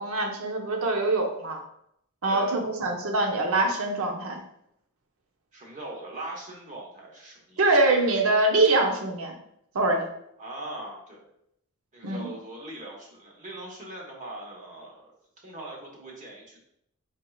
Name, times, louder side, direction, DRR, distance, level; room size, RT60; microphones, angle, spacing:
voice 1, 0.0-1.6 2.2-4.4 7.6-9.4 9.7-10.0 12.0-12.3, right 2 dB, 75° right, 3 dB, 0.7 m, -24 dB
voice 2, 5.5-7.6 10.4-11.3 11.9-15.1 15.4-16.6, right 1 dB, 35° right, -1 dB, 1.1 m, -41 dB
4.5 x 4.4 x 2.3 m, 0.75 s
head